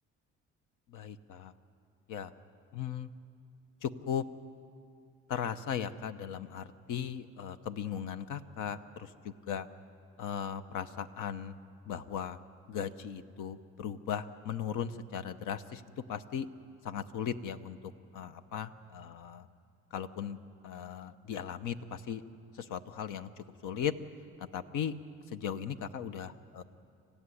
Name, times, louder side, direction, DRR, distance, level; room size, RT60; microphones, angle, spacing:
voice 1, 0.9-1.5 2.1-2.3 2.7-3.1 3.8-4.2 5.3-9.7 10.2-11.5 11.9-12.4 12.7-15.8 16.1-16.5 16.8-17.8 18.1-19.5 19.9-20.4 20.6-22.2 22.5-23.9 24.5-24.9 25.3-26.6, left 8 dB, 85° left, 10 dB, 1.0 m, -37 dB
25.0 x 15.5 x 9.9 m, 2.5 s
cardioid pair, 90°, 30 cm